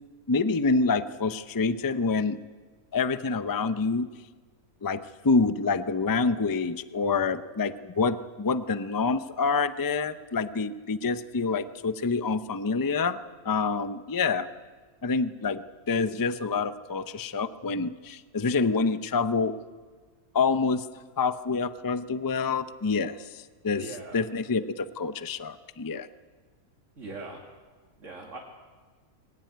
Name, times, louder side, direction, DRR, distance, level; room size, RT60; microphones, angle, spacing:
voice 1, 0.3-2.4 2.9-4.1 4.8-13.2 13.4-14.5 15.0-19.5 20.3-20.9 21.2-26.1, left 4 dB, 30° left, 12 dB, 0.4 m, -27 dB
voice 2, 23.7-24.2 27.0-27.4 28.0-28.4, right 2 dB, 60° right, -1 dB, 2.7 m, -40 dB
21.5 x 18.5 x 9.3 m, 1.4 s
omnidirectional pair, 1.5 m